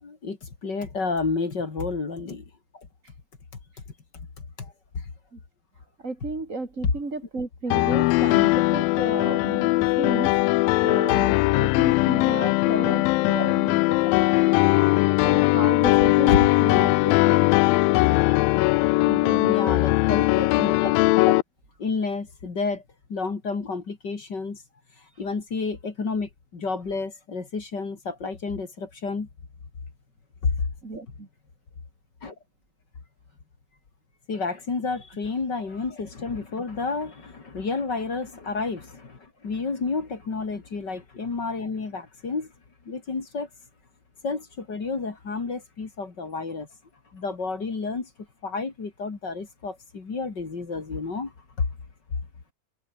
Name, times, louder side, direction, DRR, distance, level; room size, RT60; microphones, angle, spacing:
voice 1, 0.0-2.4 2.7-2.9 4.1-4.3 4.6-5.1 12.7-12.9 13.9-14.1 19.4-20.9 21.2-21.3 21.8-22.8 23.1-24.6 25.0-29.3 30.4-30.7 32.2-32.3 34.3-42.5 42.8-43.5 44.2-46.7 47.1-48.1 48.4-51.7, left 4 dB, 30° left, 3.0 m, -30 dB
voice 2, 6.0-10.3 10.8-13.8 15.2-17.5 19.1-19.8 30.8-31.3, right 3 dB, 20° right, 3.4 m, -33 dB
Piano, 7.7-21.4, left 21 dB, 90° left, 2.4 m, -20 dB
omnidirectional pair, 4.0 m